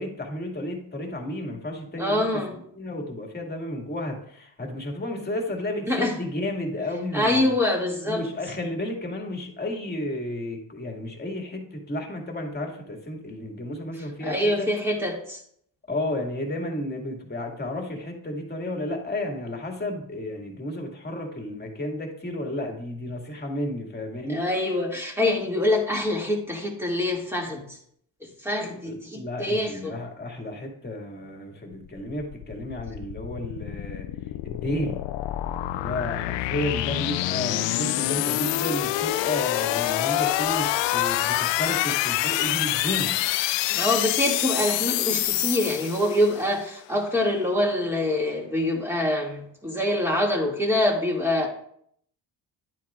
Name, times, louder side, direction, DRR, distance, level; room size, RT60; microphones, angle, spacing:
voice 1, 0.0-7.6 8.0-14.7 15.9-24.7 28.8-34.1 34.4-35.0 35.7-43.2, left 1 dB, 20° left, 2 dB, 2.1 m, -32 dB
voice 2, 2.0-2.6 5.9-6.1 7.1-8.2 14.2-15.4 24.3-27.8 28.2-29.9 43.7-51.5, left 1 dB, 5° right, -1 dB, 2.2 m, -25 dB
sound 1, 31.9-46.5, left 15 dB, 80° left, 0.5 m, -26 dB
10.5 x 9.1 x 2.4 m, 0.67 s
cardioid pair, 95°, 43 cm